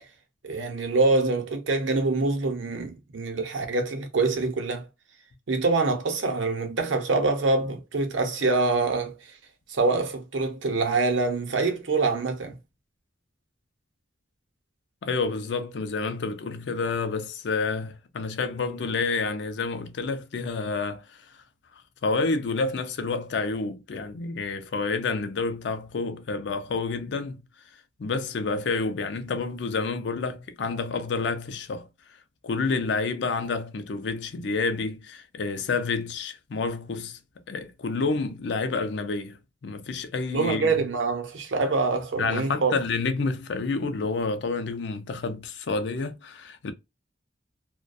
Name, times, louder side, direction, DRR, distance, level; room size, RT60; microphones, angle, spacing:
voice 1, 0.4-4.9 5.5-9.3 9.7-12.6 40.3-42.8, right 3 dB, 85° right, 0.7 m, -25 dB
voice 2, 15.0-21.3 22.0-27.4 28.0-31.9 32.4-37.2 37.5-40.9 42.2-46.7, left 4 dB, 65° left, 0.4 m, -29 dB
2.3 x 2.2 x 2.4 m
head